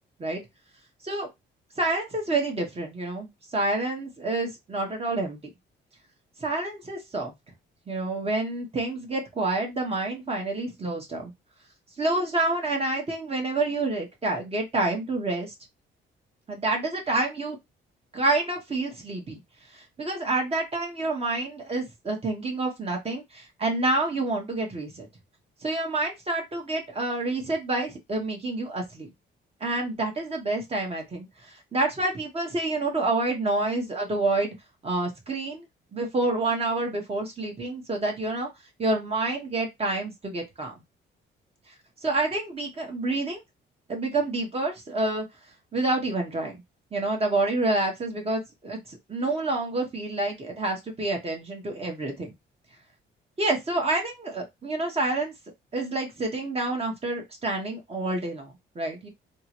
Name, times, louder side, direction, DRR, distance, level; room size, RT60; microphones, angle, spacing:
voice 1, 1.8-5.4 6.4-7.3 7.9-11.3 12.0-15.5 16.5-17.6 18.1-19.4 19.7-25.1 25.6-29.1 29.6-34.5 34.8-35.6 35.9-38.5 38.8-40.8 42.0-43.4 43.9-45.2 45.7-46.6 46.9-52.3 53.4-55.3 55.7-59.1, right 2 dB, 30° right, 1 dB, 1.5 m, -28 dB
3.4 x 2.2 x 2.9 m, 0.19 s
cardioid pair, 90°, 20 cm